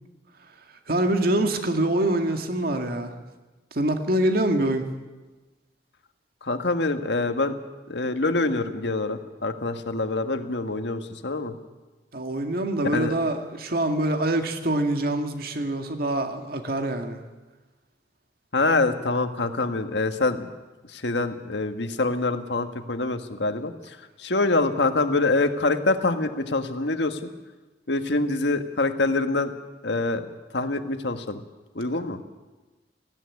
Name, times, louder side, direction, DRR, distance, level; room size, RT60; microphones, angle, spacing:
voice 1, 0.9-3.1 3.7-4.8 12.1-17.2, right 1 dB, 55° right, 5 dB, 2.0 m, -25 dB
voice 2, 6.4-7.5 7.9-11.5 12.9-13.1 18.5-20.5 20.9-23.7 24.2-27.3 27.9-29.5 29.8-30.2 30.5-31.4 31.7-32.2, left 2 dB, 80° left, 7 dB, 1.5 m, -25 dB
18.5 x 15.5 x 9.6 m, 1.2 s
head